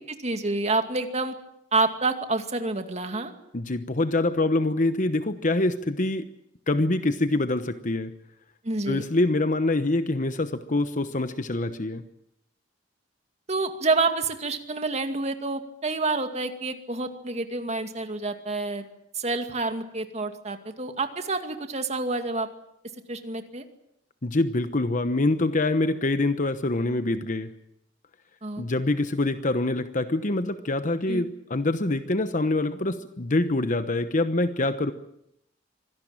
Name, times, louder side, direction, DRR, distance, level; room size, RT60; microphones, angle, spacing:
voice 1, 0.0-1.3 1.7-3.3 8.6-9.0 13.5-18.8 19.1-22.5 23.1-23.6 28.4-28.7 31.1-31.2, right 3 dB, 35° right, 7 dB, 2.3 m, -28 dB
voice 2, 3.5-6.3 6.7-8.1 8.9-12.0 24.2-27.5 28.6-34.9, left 2 dB, 40° left, 10 dB, 1.0 m, -25 dB
25.0 x 17.5 x 8.9 m, 0.78 s
head